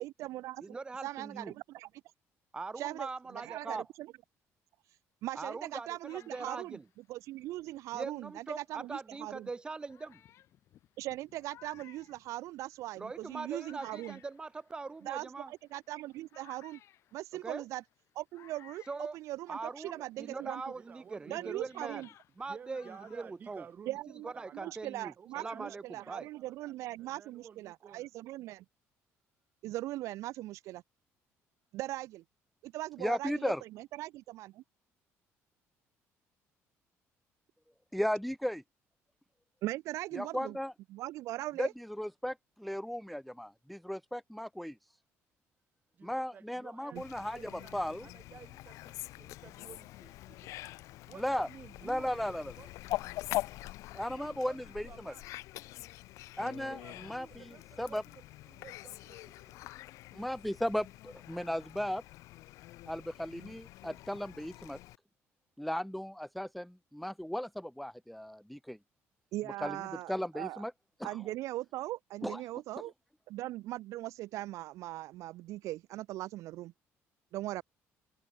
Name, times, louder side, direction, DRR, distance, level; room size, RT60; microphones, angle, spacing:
voice 1, 0.0-0.7 1.0-1.9 2.8-4.1 5.2-6.8 7.1-9.5 11.0-14.2 15.0-16.8 17.1-17.8 18.1-20.6 21.3-22.1 23.9-28.6 29.6-30.8 31.7-32.2 32.6-34.6 39.6-40.6 40.9-41.7 46.9-47.0 69.3-70.6 71.0-72.9 73.3-76.7 77.3-77.6, right 16 dB, 70° right, 0.5 m, -40 dB
voice 2, 0.6-1.5 2.5-3.8 5.4-6.8 7.9-10.2 13.0-15.5 17.4-17.6 18.9-19.2 19.5-22.1 22.4-23.6 24.2-26.3, right 3 dB, 15° right, 2.1 m, -41 dB
sound 1, 5.6-8.6 9.3-9.4 9.9-19.9 20.2-23.9, left 12 dB, 55° left, 5.0 m, -61 dB
voice 3, 19.8-21.7 22.5-24.0 24.3-24.7 25.2-26.7 27.0-28.1 45.9-47.0 47.3-47.7 48.0-50.5 51.0-52.9 54.1-54.6 54.8-55.3 56.7-59.6, right 7 dB, 35° right, 2.4 m, -54 dB
voice 4, 33.0-33.6 37.9-38.6 40.1-40.7 41.6-44.8 46.0-48.1 51.2-51.5 51.8-52.5 53.9-55.1 56.4-58.0 60.1-62.0 62.9-64.8 65.6-68.8 69.6-69.8 70.1-70.7 71.0-71.2 72.2-72.4, equal, ahead, 0.4 m, -36 dB
Fowl, 47.0-65.0, left 17 dB, 75° left, 0.6 m, -44 dB
cardioid pair, 155°, 5 cm